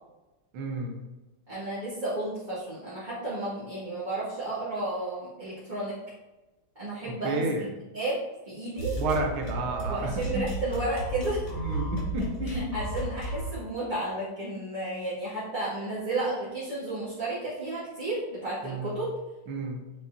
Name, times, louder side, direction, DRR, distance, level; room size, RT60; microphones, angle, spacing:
voice 1, 0.5-0.9 7.0-7.7 9.0-10.4 11.6-12.8 18.6-19.0 19.5-19.8, right 2 dB, 75° right, 2 dB, 1.8 m, -31 dB
voice 2, 1.5-5.9 6.8-7.4 7.9-8.2 8.4-8.9 9.9-11.4 12.4-19.1, right 2 dB, 20° right, -11 dB, 2.0 m, -32 dB
sound 1, 8.8-13.6, right 1 dB, 85° left, 3.3 m, -33 dB
8.3 x 4.8 x 2.7 m, 1.1 s
omnidirectional pair, 2.3 m